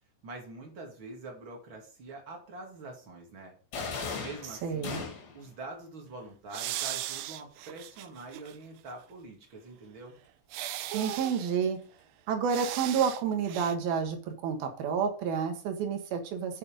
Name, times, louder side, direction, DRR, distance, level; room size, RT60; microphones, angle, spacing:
voice 1, 0.2-3.5 4.2-5.0 5.3-10.2, right 3 dB, 40° right, 1 dB, 2.0 m, -45 dB
sound 1, 3.7-5.5, left 4 dB, 65° left, 4.4 m, -37 dB
voice 2, 4.6-5.0 10.9-11.8 12.3-16.6, right 6 dB, 65° right, 5 dB, 2.7 m, -30 dB
sound 2, 6.5-8.6 8.9-9.0 10.5-11.5 12.5-13.2 13.5-13.8, right 14 dB, 80° right, 2.5 m, -37 dB
8.5 x 6.8 x 5.1 m, 0.40 s
omnidirectional pair, 5.5 m